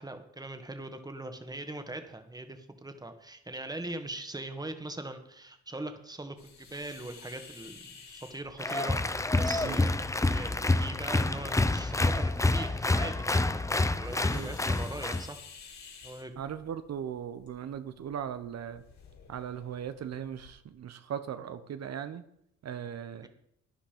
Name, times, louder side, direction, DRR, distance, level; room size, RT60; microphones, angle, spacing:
voice 1, 0.0-13.6 14.0-15.4 16.0-16.4 23.2-23.3, right 2 dB, 15° right, 7 dB, 1.8 m, -41 dB
sound 1, 6.4-20.5, left 5 dB, 65° left, 3.6 m, -54 dB
Applause, 8.6-15.3, left 2 dB, 10° left, 0.6 m, -28 dB
voice 2, 16.4-18.8 19.3-22.2 22.6-23.3, right 8 dB, 60° right, 11 dB, 1.0 m, -38 dB
12.0 x 10.5 x 5.2 m, 0.74 s
cardioid pair, 90°, 30 cm